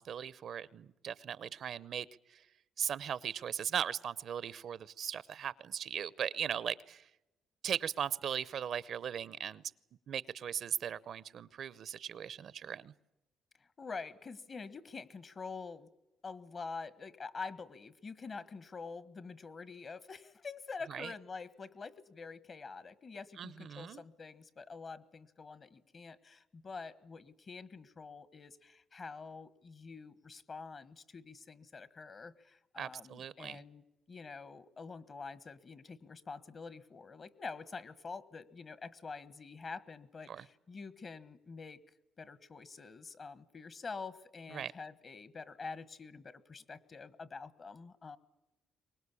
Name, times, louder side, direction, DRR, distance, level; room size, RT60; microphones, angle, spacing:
voice 1, 0.0-2.4 2.8-7.0 7.6-9.6 10.1-12.9 20.9-21.1 23.4-24.0 32.8-33.6 40.3-40.4 44.5-44.7, right 8 dB, 65° right, 19 dB, 0.8 m, -38 dB
voice 2, 13.6-15.9 16.2-41.8 42.2-48.2, left 4 dB, 40° left, 16 dB, 1.4 m, -46 dB
24.0 x 20.0 x 8.5 m, 0.96 s
cardioid pair, 90°, 0 cm